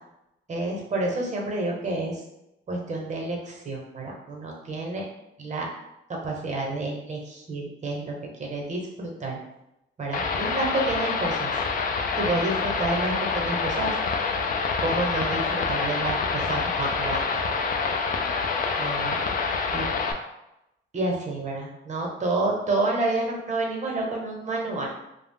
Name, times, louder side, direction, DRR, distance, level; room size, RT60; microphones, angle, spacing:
voice 1, 0.5-2.2 2.7-5.1 5.4-5.7 6.1-8.1 8.4-9.4 10.0-11.5 12.2-14.0 14.8-17.6 18.8-19.2 19.7-19.9 20.9-24.9, right 2 dB, 35° right, -1 dB, 0.8 m, -29 dB
sound 1, 10.1-20.1, left 4 dB, 45° left, 0.4 m, -27 dB
2.3 x 2.0 x 3.5 m, 0.88 s
cardioid pair, 90°, 20 cm